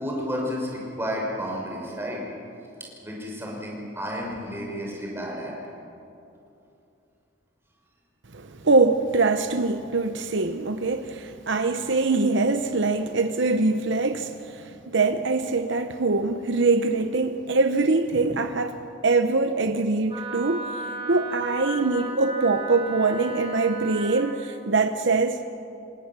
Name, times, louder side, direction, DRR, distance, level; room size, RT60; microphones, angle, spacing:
voice 1, 0.0-2.2 3.0-5.5, equal, 10° right, -3 dB, 6.2 m, -31 dB
voice 2, 8.3-18.8 19.0-20.8 21.1-25.4, right 3 dB, 65° right, 8 dB, 0.9 m, -23 dB
Wind instrument woodwind instrument, 20.1-24.3, right 2 dB, 30° right, 3.7 m, -34 dB
28.0 x 19.0 x 7.5 m, 2.7 s
head